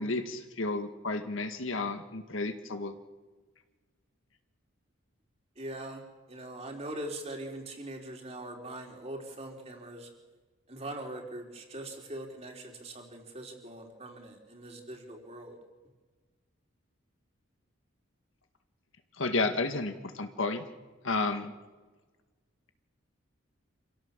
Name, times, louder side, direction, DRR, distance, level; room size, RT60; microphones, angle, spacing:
voice 1, 0.0-2.9 19.2-20.6 21.0-21.5, left 3 dB, 70° left, 7 dB, 1.9 m, -32 dB
voice 2, 5.6-6.0 6.3-10.1 10.7-15.6, right 1 dB, 30° right, 1 dB, 4.0 m, -42 dB
27.5 x 17.0 x 7.4 m, 1.3 s
head